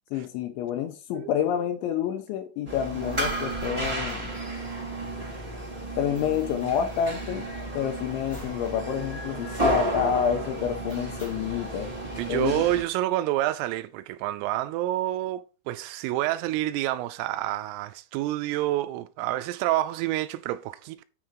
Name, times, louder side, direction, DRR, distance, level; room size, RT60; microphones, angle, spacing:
voice 1, 0.1-4.3 6.0-11.9 12.3-12.6, left 9 dB, 80° left, 3.0 m, -28 dB
sound 1, 2.7-12.8, right 1 dB, 20° right, 1.0 m, -32 dB
sound 2, 2.9-5.1 5.4-5.5 5.7-7.8 8.3-8.7 9.0-9.1 9.5-10.0 10.9-11.6, right 3 dB, 5° left, 2.2 m, -46 dB
voice 2, 12.2-21.0, right 15 dB, 85° right, 3.2 m, -28 dB
9.5 x 5.0 x 4.5 m
omnidirectional pair, 5.9 m